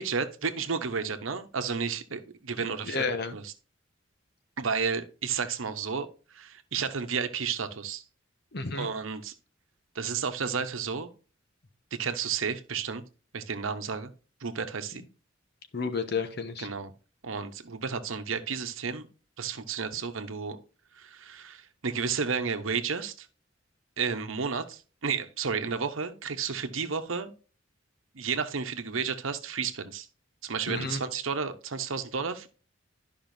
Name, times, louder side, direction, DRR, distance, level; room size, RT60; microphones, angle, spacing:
voice 1, 0.0-3.0 3.3-3.5 4.6-8.0 8.8-9.3 9.9-11.1 11.9-13.0 13.3-14.1 14.4-15.0 16.6-16.9 17.2-19.1 19.4-20.6 20.9-23.3 24.0-27.3 28.1-30.1 30.4-32.5, right 5 dB, 85° right, 8 dB, 0.9 m, -32 dB
voice 2, 2.8-3.4 8.5-8.9 15.7-16.7 30.7-31.0, left 4 dB, 55° left, 8 dB, 1.1 m, -31 dB
12.0 x 5.5 x 2.7 m, 0.36 s
head